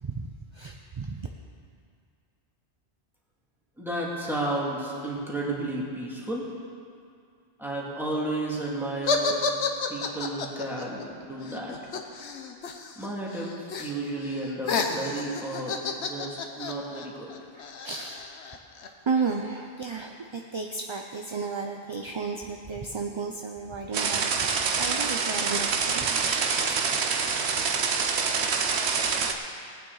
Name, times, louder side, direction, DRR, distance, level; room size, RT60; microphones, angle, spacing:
voice 1, 0.5-1.3 17.5-18.3 19.1-26.5 27.8-27.9, right 4 dB, 35° right, 2 dB, 0.5 m, -33 dB
voice 2, 3.8-6.5 7.6-9.4 9.9-11.8 13.0-17.3, right 2 dB, ahead, -5 dB, 2.2 m, -32 dB
sound 1, 9.1-13.1 13.3-13.9 14.2-18.9, left 4 dB, 85° left, 1.1 m, -31 dB
sound 2, 23.9-29.3, right 5 dB, 80° right, 1.1 m, -26 dB
19.0 x 9.1 x 4.0 m, 2.3 s
omnidirectional pair, 1.1 m